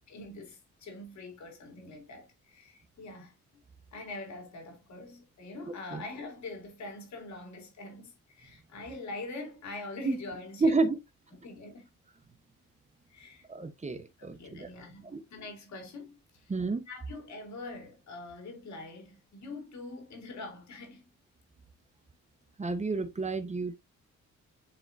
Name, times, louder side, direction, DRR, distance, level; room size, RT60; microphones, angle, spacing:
voice 1, 0.1-3.3 3.9-10.8 11.3-11.9 13.1-13.5 14.2-16.5 16.9-21.1, left 2 dB, 65° left, 3.7 m, -44 dB
voice 2, 10.6-11.0 13.5-14.7 15.1-15.2 16.5-16.8 22.6-23.8, right 3 dB, 25° right, 1.1 m, -30 dB
9.9 x 3.8 x 2.7 m
cardioid pair, 90°, 30 cm